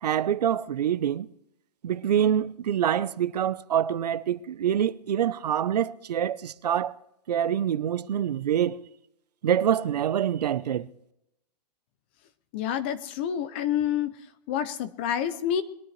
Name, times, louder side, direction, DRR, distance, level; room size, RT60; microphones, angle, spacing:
voice 1, 0.0-1.3 1.8-6.9 7.3-8.8 9.4-10.9, right 9 dB, 70° right, 0.8 m, -26 dB
voice 2, 12.5-14.1 14.5-15.6, left 9 dB, 15° left, 0.4 m, -28 dB
21.5 x 13.0 x 3.3 m
hypercardioid pair, 170°, 21 cm